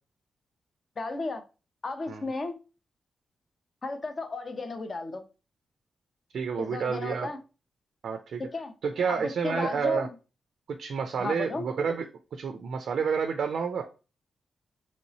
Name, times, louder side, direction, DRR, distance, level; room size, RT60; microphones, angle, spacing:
voice 1, 1.0-1.4 1.8-2.5 3.8-5.2 6.6-7.4 8.4-8.7 9.1-10.1 11.2-11.6, left 3 dB, 35° left, 0.4 m, -34 dB
voice 2, 6.3-7.3 8.0-8.4 8.8-10.1 10.8-12.0 12.3-13.8, right 6 dB, 65° right, 0.3 m, -29 dB
3.0 x 2.9 x 2.7 m
wide cardioid pair, 170°, 0 cm